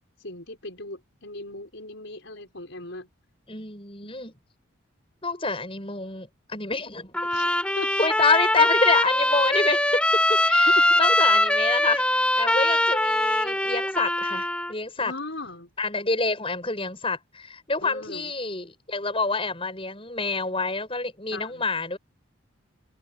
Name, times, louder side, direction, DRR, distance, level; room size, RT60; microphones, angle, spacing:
voice 1, 0.2-3.1 4.0-4.3 7.2-7.9 10.7-10.9 15.0-15.7 17.8-18.3 21.3-21.6, left 2 dB, 60° left, 6.5 m, -38 dB
voice 2, 3.5-4.3 5.2-7.2 8.0-10.0 10.3-15.1 15.8-22.0, left 3 dB, 25° left, 7.3 m, -27 dB
Trumpet, 7.1-14.7, left 1 dB, 5° left, 3.9 m, -22 dB
head